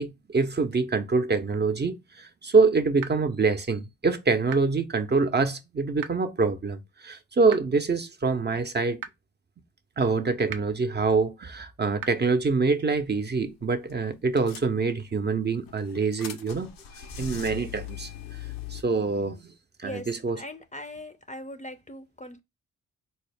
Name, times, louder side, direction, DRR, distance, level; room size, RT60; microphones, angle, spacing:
voice 1, 0.0-9.0 10.0-16.7 17.2-18.4 18.7-19.5 19.8-20.4, right 4 dB, 30° right, 0.6 m, -25 dB
sound 1, 3.0-3.1 4.5-4.6 6.0-6.1 7.5-7.6 9.0-9.1 10.5-10.6 12.0-12.1, right 9 dB, 75° right, 0.5 m, -35 dB
sound 2, 13.4-13.6 13.9-14.0 14.4-15.2 15.7-18.8, left 9 dB, 85° left, 0.6 m, -40 dB
voice 2, 20.4-22.4, left 1 dB, 20° left, 0.5 m, -40 dB
4.0 x 2.0 x 3.3 m
supercardioid pair, 50°, 33 cm